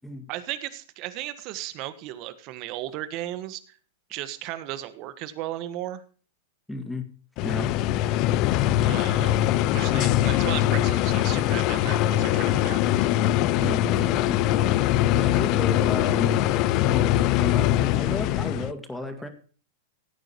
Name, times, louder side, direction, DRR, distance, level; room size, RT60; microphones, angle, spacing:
voice 1, 0.3-3.8 4.1-6.0 8.8-9.4 9.7-12.9, right 14 dB, 45° right, 13 dB, 1.5 m, -35 dB
voice 2, 6.7-7.1 7.4-7.7 13.6-14.4 15.2-16.4 16.8-19.3, left 2 dB, 5° left, 7 dB, 2.1 m, -33 dB
sound 1, 7.4-18.7, left 13 dB, 45° left, 0.6 m, -22 dB
17.0 x 9.2 x 3.0 m, 0.40 s
hypercardioid pair, 120°, 0 cm